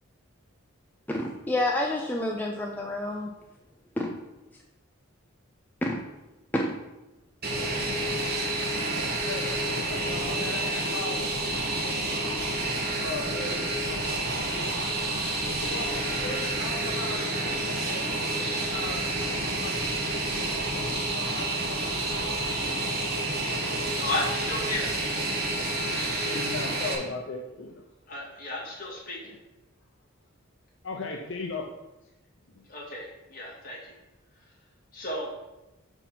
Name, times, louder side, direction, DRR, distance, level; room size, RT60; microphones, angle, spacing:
voice 1, 1.1-3.3 4.0-4.1 5.8-6.0 6.5-6.8, left 1 dB, 10° left, 0 dB, 0.4 m, -28 dB
Fixed-wing aircraft airplane, 7.4-26.9, right 2 dB, 45° right, 1.3 m, -29 dB
voice 2, 9.3-11.3 11.8-12.4 13.0-15.0 15.5-17.2 17.9-21.8 22.7-22.9 24.4-24.5 25.1-27.8 30.8-31.7 32.5-32.6, left 3 dB, 60° left, 1 dB, 0.7 m, -39 dB
voice 3, 23.9-24.9 28.1-29.3 32.7-33.9 34.9-35.3, left 2 dB, 40° left, -5 dB, 2.2 m, -34 dB
5.5 x 4.6 x 5.8 m, 0.99 s
head